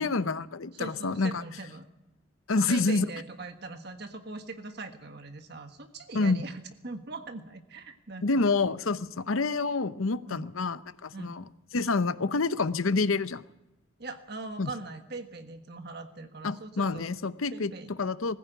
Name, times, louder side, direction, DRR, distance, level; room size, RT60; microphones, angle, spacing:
voice 1, 0.0-1.4 2.5-3.1 6.1-6.4 8.2-11.4 11.7-13.4 14.6-14.7 16.4-18.4, left 3 dB, 80° left, 14 dB, 0.8 m, -28 dB
voice 2, 0.7-1.8 2.6-8.5 10.3-10.5 11.1-11.4 14.0-17.1 17.5-17.9, right 3 dB, 50° right, 6 dB, 1.5 m, -41 dB
20.5 x 15.5 x 9.2 m, 0.93 s
head